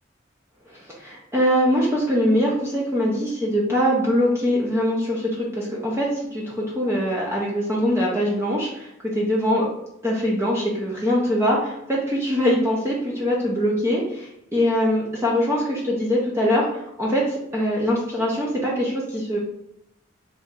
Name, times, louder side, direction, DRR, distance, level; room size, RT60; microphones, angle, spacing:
voice 1, 0.7-8.9 9.2-9.7 10.0-19.4, equal, 15° right, -4 dB, 0.5 m, -23 dB
3.0 x 2.7 x 3.6 m, 0.82 s
head